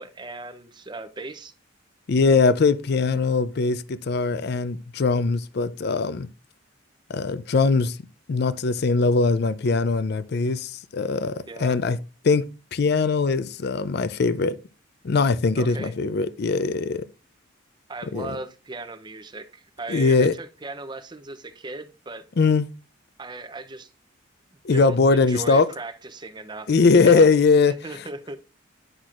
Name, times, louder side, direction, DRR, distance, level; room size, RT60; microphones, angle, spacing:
voice 1, 0.0-1.5 11.5-11.8 15.6-15.9 17.9-22.3 23.2-23.9 24.7-26.7 27.0-27.3 27.7-28.4, right 3 dB, 20° right, 0.6 m, -37 dB
voice 2, 2.1-6.3 7.1-8.0 8.3-11.3 11.6-12.0 12.2-14.6 15.0-17.0 18.1-18.3 19.9-20.3 22.4-22.7 24.6-25.7 26.7-27.8, left 4 dB, 50° left, 0.4 m, -21 dB
10.0 x 6.0 x 2.5 m
head